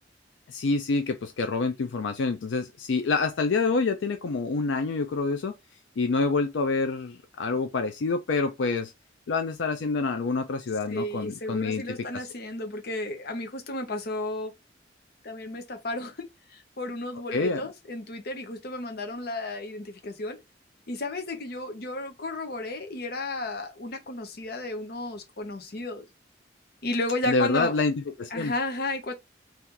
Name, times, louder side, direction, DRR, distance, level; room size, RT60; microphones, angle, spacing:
voice 1, 0.5-5.5 6.0-8.9 9.3-11.8 12.1-12.2 17.3-17.6 27.3-28.5, left 4 dB, 80° left, 0.4 m, -27 dB
voice 2, 10.9-14.5 15.2-20.4 20.9-26.1 26.8-27.8 28.3-29.1, left 2 dB, 55° left, 0.8 m, -33 dB
2.9 x 2.4 x 3.6 m
head